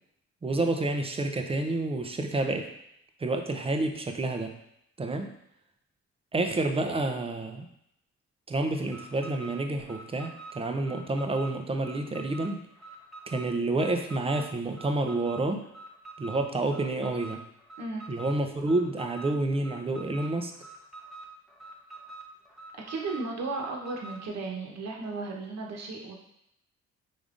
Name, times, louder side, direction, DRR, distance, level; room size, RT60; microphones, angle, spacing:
voice 1, 0.4-2.7 3.2-4.6 5.0-5.3 6.3-7.7 8.5-12.6 13.3-15.6 16.2-17.4 18.1-20.5, right 2 dB, 20° right, 5 dB, 0.5 m, -29 dB
Alarm, 8.8-24.3, right 3 dB, ahead, 0.9 m, -46 dB
voice 2, 22.9-26.1, right 3 dB, 60° right, -1 dB, 1.0 m, -35 dB
5.2 x 3.5 x 2.5 m, 0.77 s
cardioid pair, 90°, 30 cm